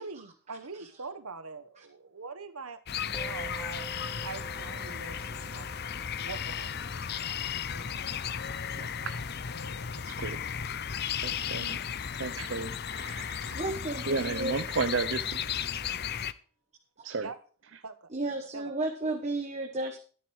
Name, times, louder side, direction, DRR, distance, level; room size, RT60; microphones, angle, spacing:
voice 1, 0.0-3.9 4.2-5.7 6.2-7.0 7.7-8.0 17.2-17.4 17.8-18.1 18.5-18.7, right 4 dB, 85° right, 1.4 m, -43 dB
sound 1, 2.9-16.3, left 8 dB, 50° left, 0.6 m, -35 dB
Musical instrument, 3.1-12.7, right 5 dB, 10° left, 1.3 m, -50 dB
voice 2, 8.8-9.2 10.1-10.4 11.2-11.8 12.2-13.6 14.1-15.4 17.0-17.3, right 4 dB, 60° right, 0.7 m, -33 dB
voice 3, 13.4-14.6 17.0-17.1 18.1-20.0, right 2 dB, 30° right, 1.5 m, -33 dB
13.0 x 10.5 x 4.8 m
head